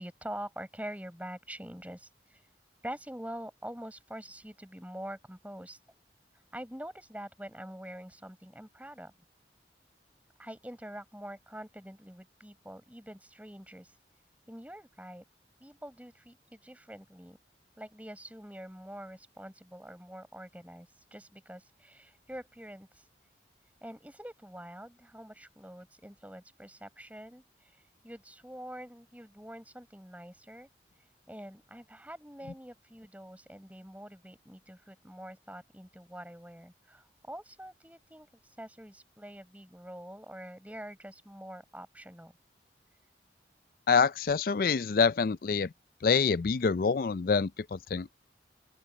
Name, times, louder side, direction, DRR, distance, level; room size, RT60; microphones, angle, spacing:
voice 1, 0.0-2.4 2.8-5.8 6.5-9.1 10.4-13.9 14.5-15.2 15.6-17.4 17.8-23.1 23.8-30.7 31.3-38.3 38.6-42.3, equal, 10° right, 6.8 m, -45 dB
voice 2, 43.9-45.7 46.0-48.1, left 5 dB, 50° left, 0.4 m, -26 dB
open air
head